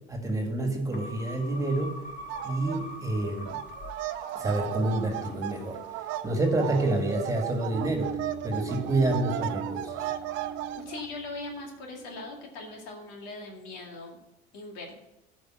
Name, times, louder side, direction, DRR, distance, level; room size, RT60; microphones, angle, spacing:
voice 1, 0.1-2.0 2.4-3.6 4.3-5.8 6.2-8.1 8.4-10.1, right 2 dB, 15° right, 2 dB, 1.8 m, -28 dB
sound 1, 0.9-7.3, left 1 dB, 40° left, 1.4 m, -45 dB
sound 2, 2.3-2.8 3.1-11.1, right 12 dB, 65° right, 0.7 m, -36 dB
sound 3, 7.7-12.8, right 6 dB, 45° right, 1.2 m, -40 dB
voice 2, 10.7-14.2 14.5-15.0, left 2 dB, 85° left, 1 dB, 2.2 m, -40 dB
11.5 x 5.3 x 6.1 m, 0.95 s
cardioid pair, 125°, 21 cm